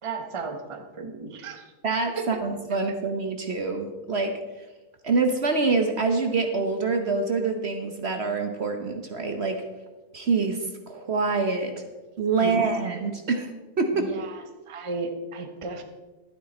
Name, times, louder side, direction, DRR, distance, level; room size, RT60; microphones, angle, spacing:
voice 1, 0.0-1.7 2.1-2.3 2.9-3.0 12.4-12.6 14.0-15.8, right 3 dB, 25° right, 5 dB, 0.9 m, -34 dB
voice 2, 1.8-4.3 5.0-9.6 10.1-11.7 12.2-13.5 13.8-14.1, right 4 dB, 50° right, 5 dB, 1.1 m, -25 dB
12.0 x 9.5 x 4.3 m, 1.2 s
omnidirectional pair, 1.6 m